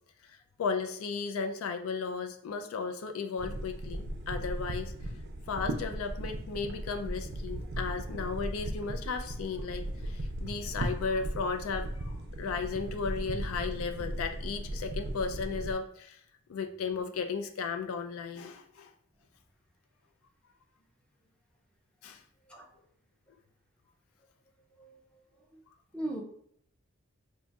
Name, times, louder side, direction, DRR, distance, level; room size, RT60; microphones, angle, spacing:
voice 1, 0.2-4.9 5.5-16.2 16.5-18.9 22.0-22.2, left 5 dB, 85° left, 7 dB, 0.4 m, -35 dB
sound 1, 3.4-15.7, right 1 dB, 55° right, 0.4 m, -37 dB
voice 2, 22.5-22.7 24.8-25.0 25.5-25.6 25.9-26.2, right 1 dB, 5° left, 0 dB, 0.5 m, -38 dB
2.5 x 2.3 x 3.9 m, 0.69 s
head